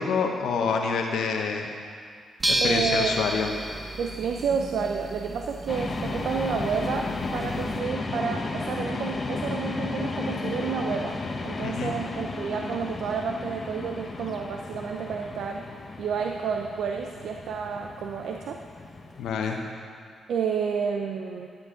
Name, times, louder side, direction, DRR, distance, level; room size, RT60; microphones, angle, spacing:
voice 1, 0.0-1.7 2.5-3.5 11.6-11.9 19.2-19.6, left 5 dB, 80° left, 2 dB, 1.0 m, -27 dB
sound 1, 2.4-7.8, right 1 dB, 25° right, 1.1 m, -32 dB
voice 2, 2.6-3.2 4.0-11.2 11.4-15.6 16.0-18.6 20.3-21.5, right 6 dB, 75° right, 3 dB, 0.6 m, -30 dB
sound 2, 5.7-19.3, left 3 dB, 45° left, 1.0 m, -34 dB
12.5 x 10.5 x 3.8 m, 2.1 s
cardioid pair, 65°, 0 cm